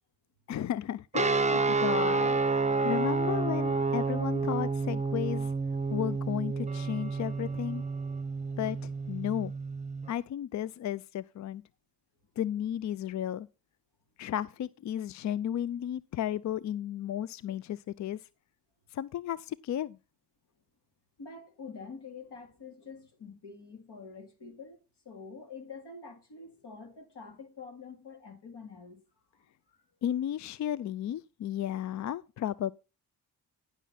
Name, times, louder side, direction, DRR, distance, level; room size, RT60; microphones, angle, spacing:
voice 1, 0.5-2.4 2.8-5.5 5.9-7.8 8.6-9.5 10.1-11.6 12.4-13.5 14.2-18.3 18.9-20.0 30.0-32.7, left 11 dB, 40° left, 0.4 m, -34 dB
sound 1, 1.1-10.1, right 4 dB, 15° right, 0.9 m, -29 dB
voice 2, 21.2-24.8 25.0-29.0 29.7-30.0, left 4 dB, 60° left, 3.0 m, -46 dB
10.5 x 6.1 x 5.6 m
hypercardioid pair, 45°, 46 cm